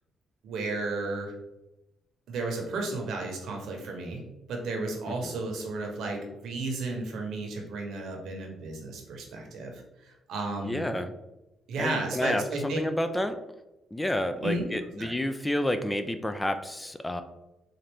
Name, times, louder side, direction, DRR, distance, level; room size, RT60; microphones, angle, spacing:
voice 1, 0.4-1.3 2.3-4.2 4.5-10.9 11.7-12.8 14.4-14.7 15.0-15.1, right 2 dB, 75° right, 1 dB, 0.9 m, -33 dB
voice 2, 10.6-11.1 11.8-13.4 13.9-17.2, left 1 dB, 10° left, 9 dB, 0.3 m, -30 dB
4.1 x 2.5 x 3.4 m, 0.97 s
cardioid pair, 90°, 0 cm